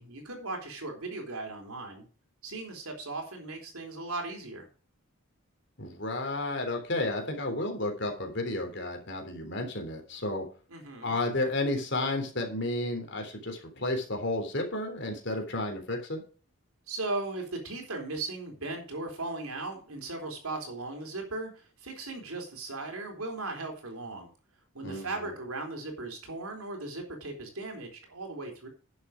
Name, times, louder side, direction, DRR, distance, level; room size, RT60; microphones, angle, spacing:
voice 1, 0.0-2.1 2.4-4.7 10.7-11.2 16.9-24.3 24.7-28.7, right 2 dB, 90° right, 3 dB, 3.8 m, -37 dB
voice 2, 5.8-10.5 11.0-16.2 24.8-25.3, left 2 dB, 55° left, 4 dB, 3.4 m, -32 dB
10.5 x 7.4 x 5.1 m, 0.38 s
head